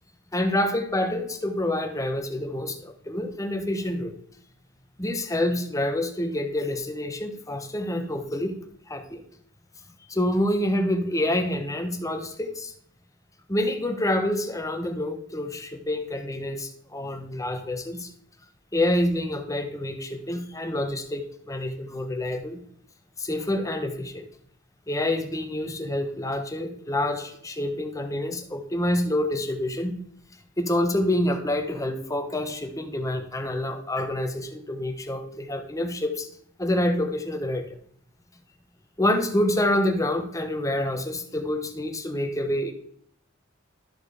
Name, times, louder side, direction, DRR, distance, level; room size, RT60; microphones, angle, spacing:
voice 1, 0.3-4.2 5.0-8.6 8.9-9.2 10.1-12.7 13.5-18.1 18.7-22.6 23.2-24.3 24.9-30.0 30.6-36.3 36.6-37.6 39.0-42.7, left 1 dB, 15° left, 5 dB, 1.1 m, -27 dB
13.0 x 4.5 x 5.0 m, 0.65 s
head